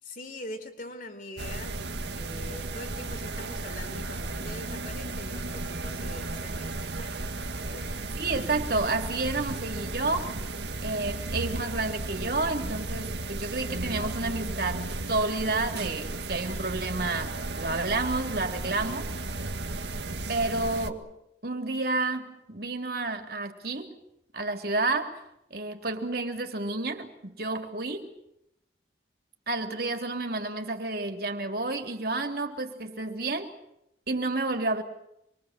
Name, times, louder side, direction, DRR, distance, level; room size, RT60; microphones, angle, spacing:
voice 1, 0.0-7.3 7.7-8.1, left 1 dB, 50° left, 5 dB, 3.8 m, -43 dB
sound 1, 1.4-20.9, right 2 dB, 75° right, 1.9 m, -34 dB
voice 2, 8.2-10.3 10.8-19.1 20.3-21.1 21.4-24.0 24.3-25.2 25.5-28.1 29.5-33.5 34.1-34.8, right 2 dB, 55° right, 4 dB, 3.6 m, -30 dB
27.5 x 23.5 x 7.7 m, 0.79 s
head